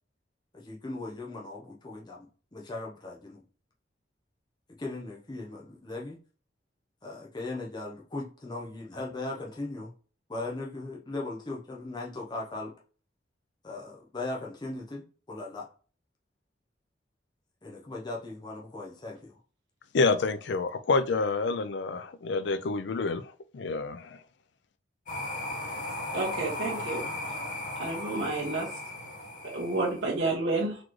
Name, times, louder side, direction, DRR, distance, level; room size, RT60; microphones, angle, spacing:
voice 1, 0.5-3.4 4.7-6.2 7.0-9.9 10.3-12.7 13.6-15.7 17.6-19.3, left 2 dB, 20° left, 0.7 m, -38 dB
voice 2, 19.9-24.2, left 3 dB, 60° left, 0.4 m, -28 dB
sound 1, 25.1-30.2, left 2 dB, 45° left, 1.3 m, -36 dB
voice 3, 26.1-27.1 27.8-28.7 29.5-30.8, right 2 dB, 65° right, 1.2 m, -30 dB
4.1 x 3.0 x 3.1 m
head